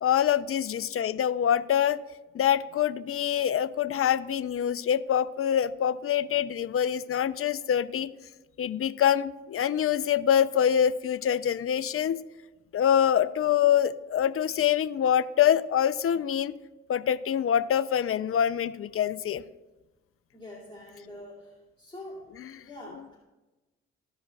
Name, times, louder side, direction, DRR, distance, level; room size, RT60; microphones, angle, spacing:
voice 1, 0.0-2.0 2.3-8.1 8.6-12.2 12.7-16.5 16.9-19.4, left 9 dB, 45° left, 14 dB, 0.6 m, -25 dB
voice 2, 20.3-22.3 22.6-23.2, left 1 dB, 15° left, -6 dB, 2.4 m, -45 dB
15.0 x 5.2 x 2.4 m, 1.1 s
hypercardioid pair, 45°, 33 cm